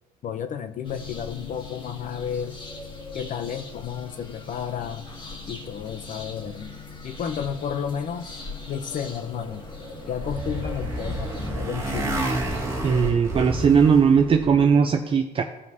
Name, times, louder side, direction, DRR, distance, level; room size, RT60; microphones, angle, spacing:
voice 1, 0.2-2.6 3.1-5.1 5.5-6.8 7.0-8.4 8.7-9.6 10.1-12.2, left 8 dB, 50° left, 9 dB, 0.6 m, -32 dB
sound 1, 0.8-11.5, left 3 dB, 30° left, 1.9 m, -40 dB
Motorcycle, 9.6-14.7, right 1 dB, 15° right, 1.6 m, -30 dB
voice 2, 12.8-15.4, right 6 dB, 30° right, 4 dB, 0.5 m, -18 dB
15.0 x 5.2 x 2.7 m, 0.99 s
cardioid pair, 110°, 17 cm